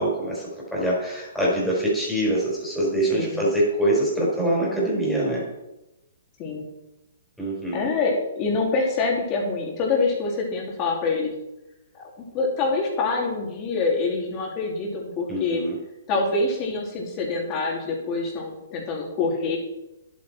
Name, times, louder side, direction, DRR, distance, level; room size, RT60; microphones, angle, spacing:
voice 1, 0.0-5.4 7.4-7.8 15.3-15.7, right 1 dB, ahead, -6 dB, 4.5 m, -24 dB
voice 2, 7.7-11.3 11.9-12.0 12.3-15.6 16.1-19.6, left 3 dB, 30° left, -1 dB, 3.1 m, -25 dB
10.5 x 8.6 x 4.6 m, 0.93 s
hypercardioid pair, 145°, 0 cm